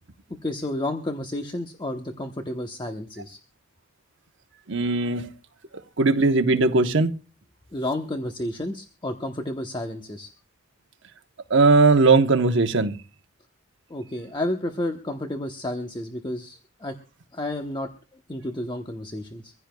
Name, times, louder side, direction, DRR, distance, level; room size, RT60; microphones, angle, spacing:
voice 1, 0.4-3.4 7.7-10.3 13.9-16.9 17.3-19.5, left 1 dB, 20° left, 1.0 m, -31 dB
voice 2, 4.7-5.3 6.0-7.1 11.5-12.9, right 3 dB, 60° right, 1.0 m, -19 dB
24.0 x 15.5 x 2.3 m
head